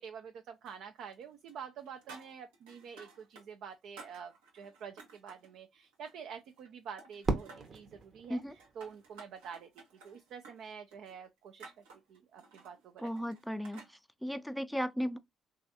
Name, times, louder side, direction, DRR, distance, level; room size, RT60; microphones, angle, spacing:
voice 1, 0.0-11.7 12.1-13.3, right 7 dB, 70° right, 0.4 m, -48 dB
sound 1, 0.7-1.2 1.5-3.5 3.7-5.5 5.9-6.7 7.0-7.9 8.4-13.9, right 4 dB, 85° right, 0.8 m, -55 dB
Fireworks, 7.2-9.4, right 3 dB, 45° right, 0.8 m, -37 dB
voice 2, 13.0-13.8 14.2-15.2, equal, ahead, 0.5 m, -35 dB
3.2 x 2.3 x 2.6 m
hypercardioid pair, 55°, 0 cm